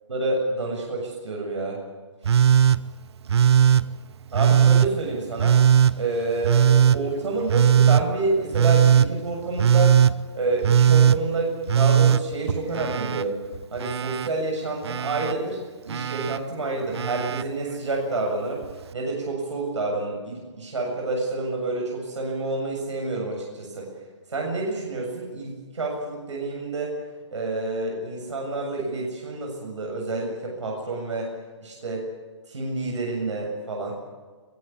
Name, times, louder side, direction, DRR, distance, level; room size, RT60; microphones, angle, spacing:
voice 1, 0.1-1.8 2.2-2.3 4.3-5.6 5.9-10.0 10.3-13.4 13.7-15.6 15.8-18.7 18.9-23.9 24.3-27.0 27.3-31.3 31.6-32.1 32.5-34.0, right 2 dB, 85° right, -1 dB, 7.3 m, -28 dB
Telephone, 2.2-2.8 3.3-3.8 4.3-4.9 5.4-5.9 6.4-7.0 7.5-8.0 8.5-9.1 9.6-10.1 10.6-11.2 11.7-13.2 13.5-14.3 14.8-15.3 15.9-16.4 16.9-17.4 18.6-18.7, right 9 dB, 60° right, 0.8 m, -18 dB
23.0 x 17.5 x 8.7 m, 1.4 s
hypercardioid pair, 140°, 15 cm